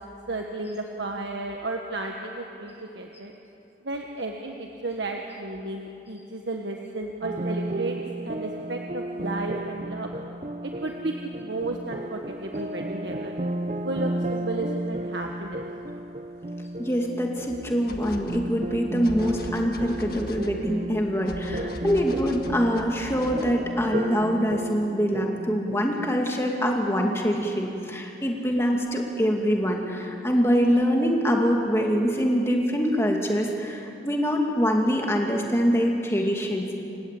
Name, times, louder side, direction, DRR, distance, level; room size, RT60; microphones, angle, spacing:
voice 1, 0.3-3.3 3.8-8.0 8.2-10.1 10.6-13.4 13.8-15.6 21.4-21.8, right 2 dB, 75° right, 2 dB, 1.5 m, -33 dB
sound 1, 7.2-26.2, right 1 dB, 40° right, 0.7 m, -33 dB
sound 2, 13.4-13.5 15.1-15.2 15.6-15.7 17.4-23.6, left 1 dB, 55° left, 1.6 m, -40 dB
voice 2, 16.8-36.8, equal, 15° left, 1 dB, 2.5 m, -24 dB
29.0 x 17.0 x 8.5 m, 2.8 s
head